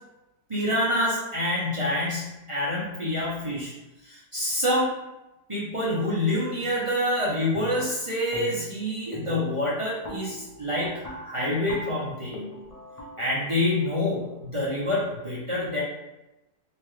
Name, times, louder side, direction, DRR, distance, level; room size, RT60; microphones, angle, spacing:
voice 1, 0.5-3.7 4.0-4.9 5.5-12.5 13.2-15.8, left 1 dB, 35° right, -8 dB, 0.5 m, -27 dB
sound 1, 7.5-8.0 8.3-8.8 9.1-14.9, right 1 dB, 45° left, 0.4 m, -41 dB
3.3 x 2.9 x 3.1 m, 0.97 s
omnidirectional pair, 1.7 m